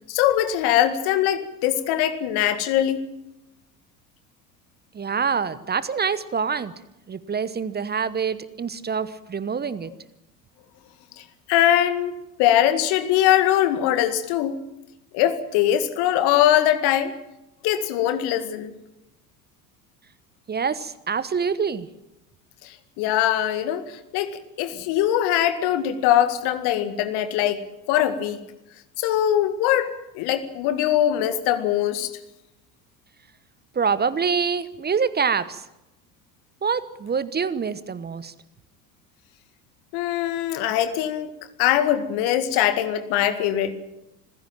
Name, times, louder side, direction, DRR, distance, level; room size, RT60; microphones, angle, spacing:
voice 1, 0.1-3.0 11.5-14.6 15.1-17.1 17.6-18.7 23.0-24.3 24.6-28.4 29.0-32.1 39.9-41.3 41.6-43.7, left 11 dB, 55° left, 10 dB, 2.1 m, -22 dB
voice 2, 4.9-6.7 7.1-9.9 20.5-21.9 33.7-35.6 36.6-38.3, right 6 dB, 20° right, 16 dB, 1.0 m, -25 dB
27.0 x 16.0 x 7.5 m, 0.92 s
figure-of-eight pair, 70°, 48 cm